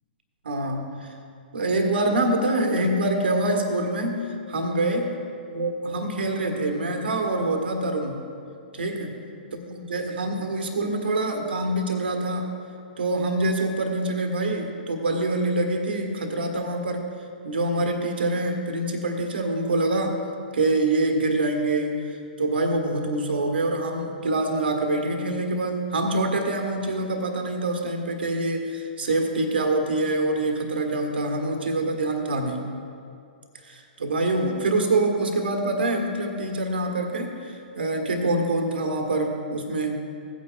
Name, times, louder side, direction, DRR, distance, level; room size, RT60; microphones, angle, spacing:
voice 1, 0.4-1.1 1.5-5.1 5.5-8.2 8.7-9.2 9.5-12.5 13.0-17.1 17.4-20.2 20.5-32.7 33.7-40.0, right 2 dB, 80° right, 3 dB, 1.5 m, -25 dB
17.5 x 9.3 x 2.4 m, 2.5 s
hypercardioid pair, 125°, 6 cm